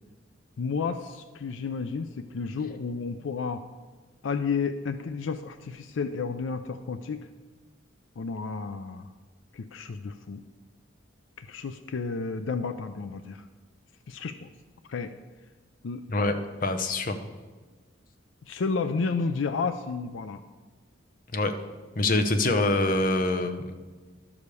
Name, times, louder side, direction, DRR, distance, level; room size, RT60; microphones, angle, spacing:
voice 1, 0.6-3.6 4.2-7.3 8.2-9.1 9.5-10.4 11.4-13.4 14.1-14.5 14.9-15.1 15.8-16.0 18.5-20.4, left 4 dB, 75° left, 10 dB, 0.4 m, -31 dB
voice 2, 16.1-17.3 21.3-21.5 22.0-23.6, left 2 dB, 45° left, 7 dB, 0.7 m, -25 dB
12.0 x 4.9 x 6.8 m, 1.4 s
head